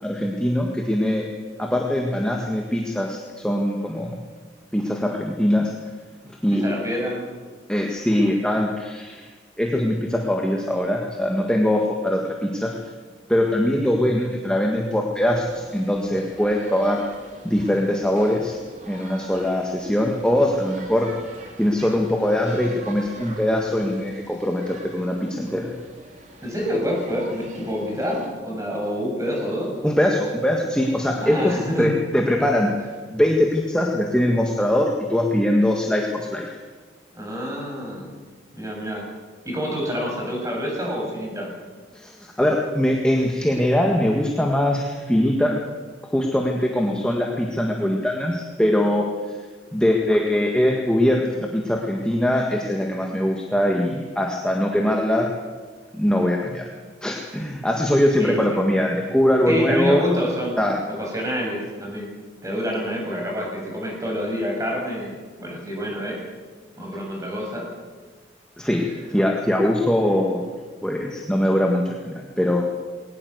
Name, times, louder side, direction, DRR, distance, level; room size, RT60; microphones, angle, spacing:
voice 1, 0.0-1.3 1.6-4.2 4.7-5.7 6.4-6.6 7.7-9.3 9.6-12.7 13.3-17.0 17.4-18.6 18.9-21.1 21.6-25.7 29.8-32.7 33.1-36.5 41.9-45.6 46.1-49.4 49.7-55.3 55.9-56.7 57.0-60.0 60.6-60.8 68.6-70.4 70.8-72.6, left 1 dB, 5° left, 0 dB, 1.7 m, -22 dB
voice 2, 6.5-7.2 26.4-29.7 31.2-31.9 37.1-38.1 38.5-39.1 39.5-41.5 58.2-58.6 59.5-62.1 62.4-66.2 66.8-67.7, equal, 15° right, -1 dB, 7.3 m, -27 dB
sound 1, 15.1-28.3, right 2 dB, 40° right, 3.4 m, -44 dB
21.0 x 19.0 x 8.0 m, 1.4 s
head